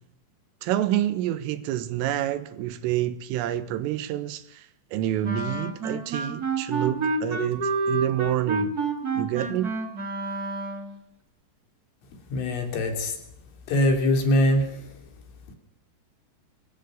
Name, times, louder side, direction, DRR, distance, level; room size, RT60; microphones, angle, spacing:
voice 1, 0.6-8.8 9.1-9.7, right 12 dB, 90° right, 3.9 m, -28 dB
Wind instrument woodwind instrument, 5.2-11.0, right 3 dB, 35° right, 1.6 m, -29 dB
voice 2, 12.3-13.2 13.7-14.9, left 1 dB, 80° left, 6.1 m, -23 dB
24.5 x 14.0 x 9.5 m
omnidirectional pair, 5.7 m